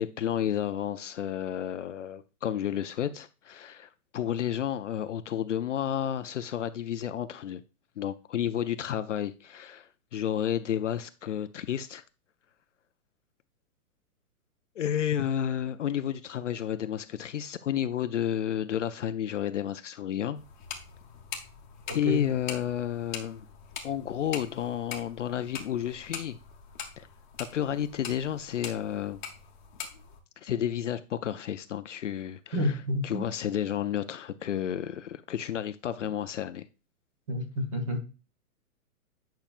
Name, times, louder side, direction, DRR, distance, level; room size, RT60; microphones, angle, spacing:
voice 1, 0.0-7.6 8.0-12.0 14.8-20.4 21.9-23.4 23.8-26.4 27.0-27.1 27.4-29.2 30.4-32.8 33.0-36.7, left 10 dB, 55° left, 0.5 m, -31 dB
sound 1, 20.3-30.2, left 7 dB, 30° left, 1.0 m, -43 dB
voice 2, 21.9-22.2 32.5-33.3 37.3-38.0, left 1 dB, 20° right, 0.9 m, -29 dB
8.9 x 5.7 x 2.4 m
hypercardioid pair, 170°, 45 cm